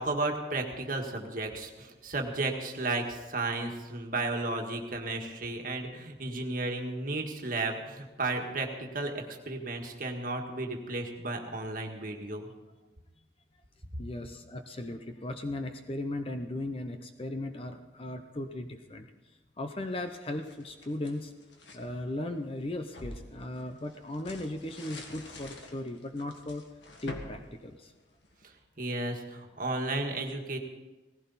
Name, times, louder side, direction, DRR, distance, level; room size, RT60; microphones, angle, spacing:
voice 1, 0.0-12.5 28.8-30.6, right 2 dB, 50° right, 3 dB, 1.7 m, -33 dB
voice 2, 14.0-21.3 21.7-26.6 27.0-27.9, left 1 dB, 30° left, 7 dB, 0.7 m, -37 dB
sound 1, 19.9-21.9 22.4-28.4, left 2 dB, 85° left, 2.0 m, -48 dB
18.0 x 15.5 x 4.2 m, 1.2 s
head